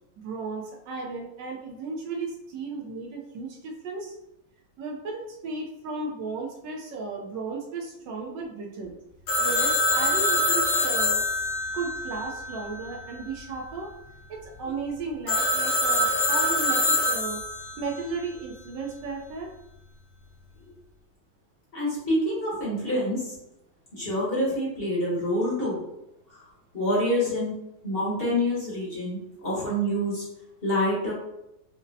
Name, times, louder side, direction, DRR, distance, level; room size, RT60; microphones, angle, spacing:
voice 1, 0.2-4.1 4.8-8.9 9.4-11.3 11.7-13.9 14.3-17.4 17.8-19.5, right 4 dB, 70° right, -1 dB, 1.1 m, -34 dB
Telephone, 9.3-12.9 15.3-17.8, left 1 dB, 85° left, 1.9 m, -25 dB
voice 2, 21.7-23.3 23.9-25.8 26.3-26.5 26.7-27.5 27.8-30.2 30.6-31.1, equal, 40° left, -6 dB, 0.9 m, -27 dB
5.2 x 2.0 x 2.6 m, 0.86 s
omnidirectional pair, 2.2 m